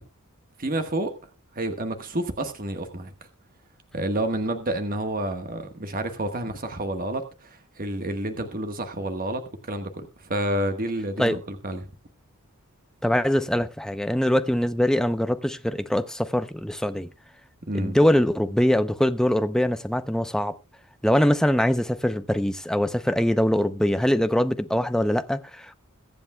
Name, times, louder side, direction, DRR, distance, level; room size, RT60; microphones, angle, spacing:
voice 1, 0.6-1.1 1.5-3.1 3.9-11.9 17.7-18.0, right 1 dB, 40° right, 1.4 m, -29 dB
voice 2, 13.0-17.1 17.7-20.6 21.0-25.7, equal, 5° left, 0.6 m, -23 dB
22.5 x 8.3 x 2.3 m
head